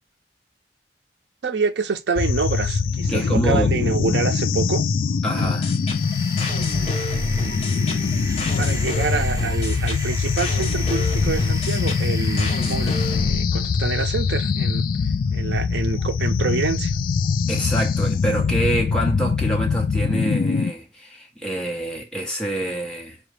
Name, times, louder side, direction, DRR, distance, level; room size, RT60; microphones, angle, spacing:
voice 1, 1.4-4.8 8.6-14.8 15.3-16.9, right 4 dB, 70° right, 0.5 m, -26 dB
sound 1, 2.2-20.7, left 5 dB, 50° left, 0.3 m, -23 dB
voice 2, 3.1-3.7 5.2-5.7 17.5-23.2, right 1 dB, 5° left, 1.1 m, -26 dB
sound 2, 5.4-13.4, left 1 dB, 35° left, 0.9 m, -30 dB
sound 3, 5.7-13.4, right 2 dB, 20° right, 0.6 m, -38 dB
4.8 x 2.3 x 3.2 m
head